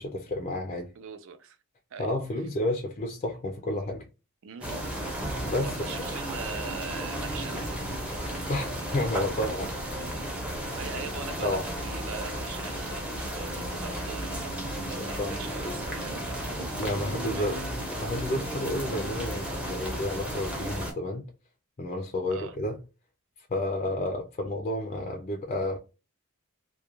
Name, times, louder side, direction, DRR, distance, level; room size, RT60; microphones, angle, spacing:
voice 1, 0.0-0.9 2.0-4.1 5.5-5.9 8.5-8.7 8.9-9.7 11.4-11.6 15.0-15.3 16.7-17.6 18.0-21.3 21.8-22.8 23.5-25.8, left 1 dB, 30° left, 0.4 m, -31 dB
voice 2, 1.0-1.6 1.9-2.1 4.4-4.7 5.6-7.8 10.0-10.2 10.8-14.6 14.9-16.4 17.2-17.7 22.3-22.6, right 6 dB, 60° right, 0.4 m, -42 dB
sound 1, 4.6-20.9, right 1 dB, 5° right, 0.6 m, -34 dB
2.3 x 2.1 x 2.9 m
head